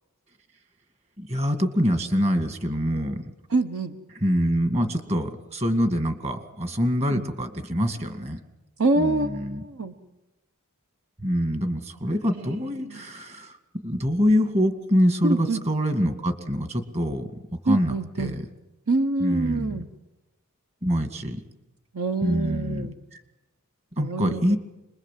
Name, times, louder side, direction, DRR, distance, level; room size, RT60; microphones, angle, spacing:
voice 1, 1.2-3.2 4.1-8.4 9.0-9.6 11.2-13.6 13.8-17.3 17.6-18.5 19.2-19.8 20.8-21.4 22.2-23.2 24.0-24.6, equal, 30° right, 7 dB, 2.3 m, -25 dB
voice 2, 3.5-4.0 7.1-7.2 8.8-9.9 12.3-13.0 15.2-15.6 17.7-18.4 18.9-19.9 21.9-22.9 24.0-24.6, right 2 dB, 70° right, 7 dB, 1.2 m, -26 dB
27.0 x 21.5 x 7.6 m, 1.0 s
head